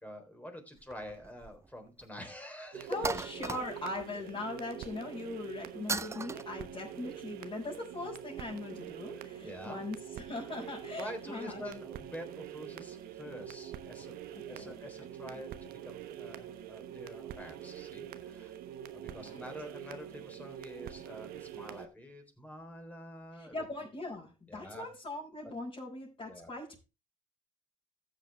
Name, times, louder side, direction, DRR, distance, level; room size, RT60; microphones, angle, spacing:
voice 1, 0.0-3.0 9.4-9.8 11.0-14.2 14.5-18.5 18.9-23.7 24.5-24.9 26.3-26.5, equal, 10° left, 4 dB, 3.8 m, -46 dB
sound 1, 0.8-1.7 2.0-2.1 3.0-4.0 5.9-6.4, right 4 dB, 15° right, 0.5 m, -36 dB
sound 2, 2.7-21.9, right 10 dB, 70° right, 1.1 m, -45 dB
voice 2, 2.9-11.6 14.5-14.7 15.0-15.3 19.1-19.4 23.3-26.8, left 2 dB, 35° left, -5 dB, 4.9 m, -40 dB
14.5 x 7.7 x 3.3 m, 0.29 s
supercardioid pair, 70°, 16 cm